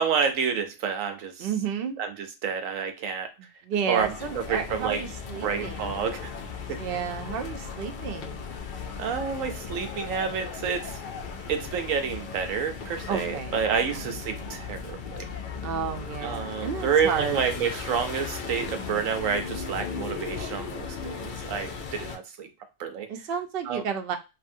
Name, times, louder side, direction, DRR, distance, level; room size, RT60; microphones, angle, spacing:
voice 1, 0.0-1.5 2.0-3.3 3.9-5.0 5.4-6.3 6.7-6.8 9.0-11.0 11.5-15.3 16.2-22.5 22.8-23.1 23.7-23.8, right 6 dB, 90° right, 7 dB, 1.0 m, -29 dB
voice 2, 1.4-1.9 3.4-6.1 6.8-8.5 13.1-14.1 15.6-17.4 23.1-24.2, right 7 dB, 60° right, 6 dB, 0.6 m, -32 dB
sound 1, 3.9-22.2, left 5 dB, 60° left, 0.5 m, -37 dB
2.7 x 2.6 x 2.6 m, 0.26 s
omnidirectional pair, 1.3 m